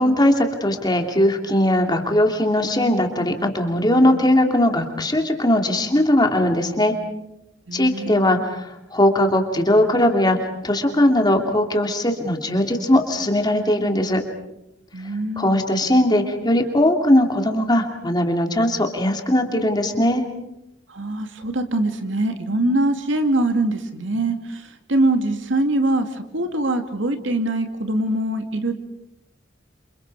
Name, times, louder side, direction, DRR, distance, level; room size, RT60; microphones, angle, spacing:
voice 1, 0.0-6.9 7.7-10.4 10.6-14.2 15.4-20.2, left 1 dB, 20° left, 4 dB, 2.7 m, -19 dB
voice 2, 7.7-8.2 14.9-15.6 20.9-24.6 24.9-28.7, right 1 dB, 80° right, 6 dB, 2.3 m, -23 dB
29.5 x 26.5 x 4.8 m, 0.89 s
head